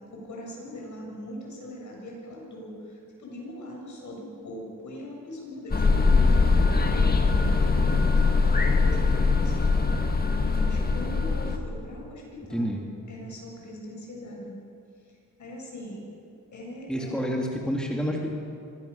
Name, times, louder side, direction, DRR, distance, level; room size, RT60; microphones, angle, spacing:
voice 1, 0.1-9.8 10.4-12.7 13.1-14.5 15.1-16.0 16.5-17.3, equal, 60° left, -1 dB, 7.3 m, -41 dB
sound 1, 5.7-11.6, left 4 dB, 30° left, 1.9 m, -22 dB
voice 2, 12.5-12.8 16.9-18.4, equal, ahead, -1 dB, 2.5 m, -28 dB
25.0 x 16.5 x 6.9 m, 2.5 s
cardioid pair, 100°, 33 cm